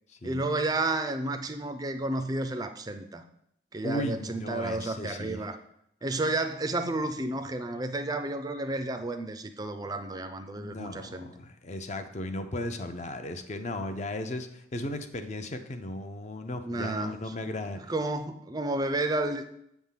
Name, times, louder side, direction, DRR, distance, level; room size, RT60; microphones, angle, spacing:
voice 1, 0.2-3.2 3.7-5.6 6.0-11.3 16.6-17.4 17.8-19.5, right 2 dB, 20° right, 8 dB, 0.4 m, -31 dB
voice 2, 3.8-5.4 10.5-17.8, left 1 dB, 35° left, 8 dB, 0.6 m, -36 dB
8.0 x 3.6 x 5.7 m, 0.75 s
head